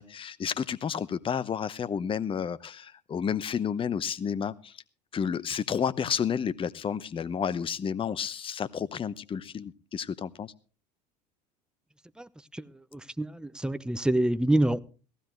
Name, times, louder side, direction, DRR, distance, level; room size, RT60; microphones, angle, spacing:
voice 1, 0.0-4.8 5.1-10.5, left 7 dB, 25° left, 18 dB, 0.8 m, -31 dB
voice 2, 12.2-12.6 12.9-14.8, right 1 dB, 5° right, 13 dB, 0.8 m, -27 dB
18.0 x 15.5 x 3.1 m, 0.35 s
hypercardioid pair, 70°, 21 cm